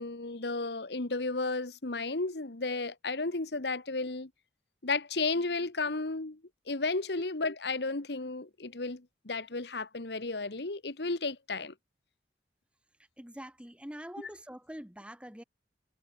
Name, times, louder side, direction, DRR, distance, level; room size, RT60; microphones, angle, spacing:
voice 1, 0.0-4.3 4.8-6.4 6.7-11.7, left 3 dB, 65° left, 1.4 m, -33 dB
voice 2, 13.2-15.4, equal, 5° right, 1.7 m, -45 dB
head